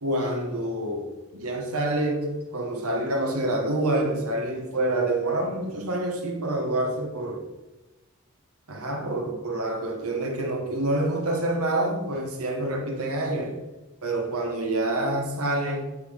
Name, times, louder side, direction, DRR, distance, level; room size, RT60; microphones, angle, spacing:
voice 1, 0.0-1.1 1.3-7.4 8.7-13.6 14.0-15.8, right 1 dB, 80° right, 1.3 m, -27 dB
6.8 x 3.9 x 6.4 m
head